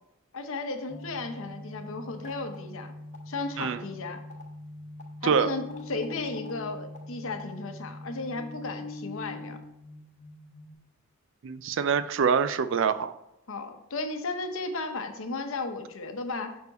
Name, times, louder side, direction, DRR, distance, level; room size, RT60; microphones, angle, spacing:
voice 1, 0.3-2.9 3.3-4.2 5.2-9.6 13.5-16.6, left 3 dB, 65° left, 6 dB, 0.8 m, -35 dB
sound 1, 0.9-10.7, left 2 dB, 30° left, 1.0 m, -42 dB
voice 2, 11.4-13.1, right 6 dB, 55° right, 13 dB, 0.4 m, -25 dB
6.5 x 4.6 x 4.1 m, 0.90 s
head